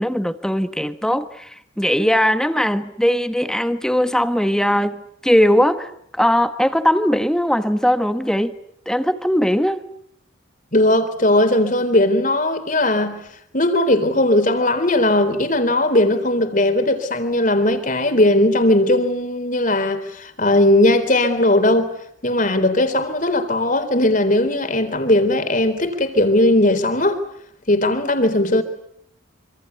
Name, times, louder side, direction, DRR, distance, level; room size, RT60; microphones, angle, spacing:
voice 1, 0.0-8.5 8.9-9.8, equal, 5° left, 1.2 m, -19 dB
voice 2, 10.7-13.2 13.5-21.9 22.2-27.2 27.7-28.6, left 1 dB, 40° left, 3.8 m, -18 dB
26.5 x 26.0 x 8.2 m
head